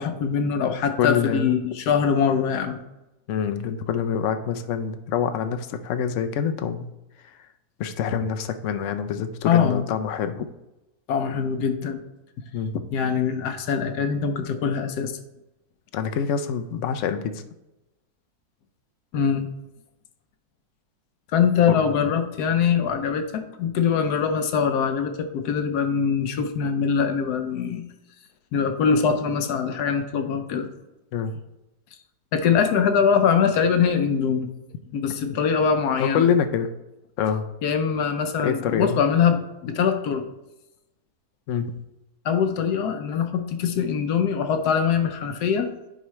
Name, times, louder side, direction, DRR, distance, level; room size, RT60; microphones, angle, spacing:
voice 1, 0.0-2.8 9.5-9.8 11.1-12.0 12.9-15.1 19.1-19.5 21.3-27.8 28.5-30.7 32.3-34.5 34.9-36.3 37.6-40.3 42.2-45.7, left 6 dB, 80° left, 7 dB, 1.3 m, -23 dB
voice 2, 1.0-1.5 3.3-6.9 7.8-10.4 12.5-12.8 15.9-17.4 21.7-21.9 31.1-31.3 35.3-35.4 36.0-36.7 37.2-37.4 38.4-39.0 41.5-41.7, left 7 dB, 65° left, 9 dB, 0.8 m, -25 dB
9.7 x 4.7 x 3.2 m, 0.95 s
omnidirectional pair, 1.7 m